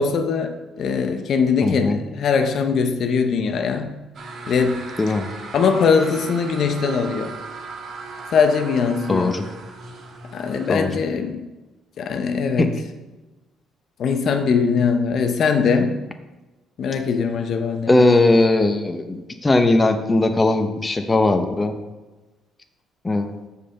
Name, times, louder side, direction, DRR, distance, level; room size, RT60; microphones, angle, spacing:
voice 1, 0.0-4.0 4.5-4.9 5.5-7.4 8.3-9.3 10.3-11.5 12.0-12.8 14.0-16.1 16.8-18.1, left 5 dB, 50° left, 0.6 m, -21 dB
voice 2, 1.6-2.0 5.0-5.3 9.1-9.5 10.7-10.9 12.6-12.7 17.9-21.7 23.0-23.3, left 2 dB, 15° left, 0.7 m, -19 dB
sound 1, 4.1-10.8, right 3 dB, 50° right, 1.4 m, -37 dB
6.6 x 5.4 x 6.4 m
cardioid pair, 130°, 0 cm